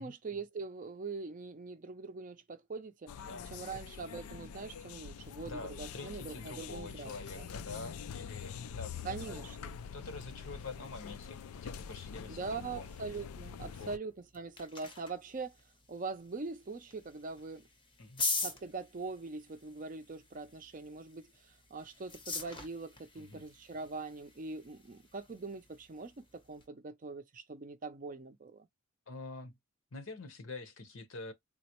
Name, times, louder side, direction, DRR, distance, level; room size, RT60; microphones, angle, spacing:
voice 1, 0.0-3.1 3.5-7.5 9.0-9.7 12.3-15.6 15.9-17.6 18.4-28.7, right 4 dB, 35° right, 0.5 m, -43 dB
sound 1, 3.1-14.0, left 7 dB, 80° left, 0.4 m, -45 dB
voice 2, 3.2-3.8 5.4-9.4 9.9-12.9 13.6-14.0 18.0-18.2 23.2-23.5 29.1-29.6 29.9-31.3, left 3 dB, 65° left, 0.8 m, -46 dB
sound 2, 14.1-26.7, left 3 dB, 25° left, 0.7 m, -44 dB
3.8 x 2.0 x 2.9 m
head